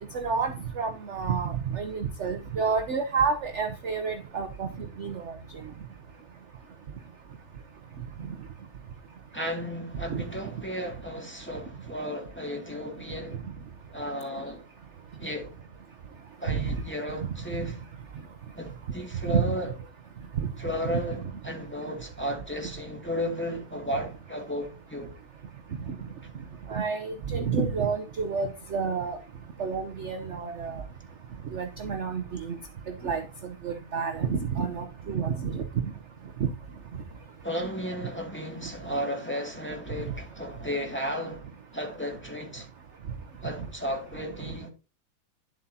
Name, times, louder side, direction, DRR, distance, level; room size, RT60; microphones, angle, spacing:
voice 1, 0.1-4.7 5.0-5.3 10.1-10.2 16.5-16.7 19.3-19.4 20.4-20.5 20.8-21.0 26.7-29.2 29.6-30.8 31.5-32.6 33.0-33.2 33.6-35.6 36.4-36.5, right 5 dB, 50° right, 0.9 m, -29 dB
voice 2, 9.3-13.4 13.9-14.7 15.2-15.5 16.4-17.8 18.6-19.7 20.6-25.1 37.4-41.5 41.7-42.7 43.4-44.7, equal, 5° left, 2.2 m, -34 dB
11.0 x 7.6 x 2.8 m
omnidirectional pair, 2.2 m